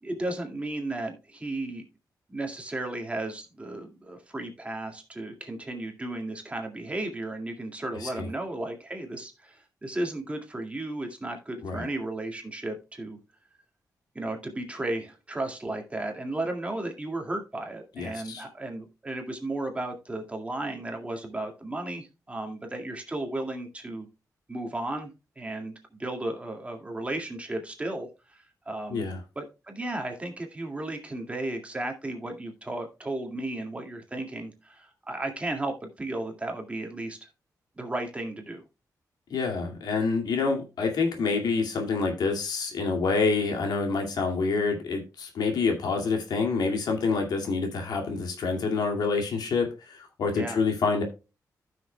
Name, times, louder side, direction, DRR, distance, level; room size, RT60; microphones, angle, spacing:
voice 1, 0.0-1.8 2.3-13.2 14.1-24.1 24.5-25.7 26.0-29.0 29.4-37.3 37.8-38.6 50.3-50.6, right 2 dB, 20° right, 3 dB, 2.1 m, -34 dB
voice 2, 18.0-18.4 28.9-29.2 39.3-51.0, left 4 dB, 80° left, 3 dB, 2.3 m, -27 dB
15.0 x 6.4 x 2.2 m, 0.29 s
wide cardioid pair, 110°, 7 cm